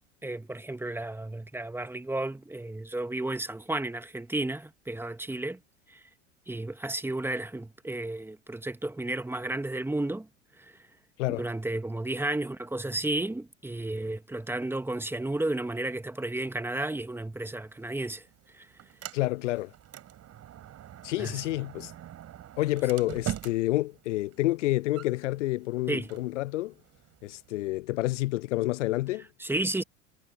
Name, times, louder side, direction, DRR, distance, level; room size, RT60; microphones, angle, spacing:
voice 1, 0.2-5.6 5.9-6.0 6.5-10.3 10.6-10.7 11.3-18.2 18.5-18.7 21.2-21.4 25.9-26.1 29.4-29.8, right 2 dB, 5° right, 2.1 m, -32 dB
Sliding door, 17.7-27.7, right 11 dB, 40° right, 6.6 m, -44 dB
voice 2, 19.1-19.7 21.0-21.9 22.6-26.7 27.2-29.2, left 18 dB, 75° left, 0.5 m, -29 dB
hypercardioid pair, 75°, 37 cm